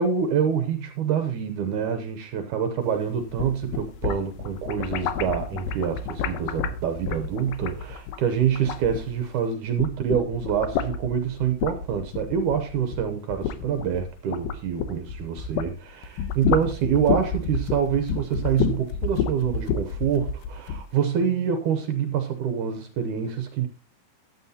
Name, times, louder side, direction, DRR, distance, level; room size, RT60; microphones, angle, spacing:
voice 1, 0.0-23.7, right 8 dB, 70° right, 1.9 m, -26 dB
sound 1, 3.2-9.4 9.7-15.7 16.0-20.9, left 7 dB, 85° left, 2.7 m, -29 dB
13.5 x 9.7 x 2.8 m
omnidirectional pair, 4.3 m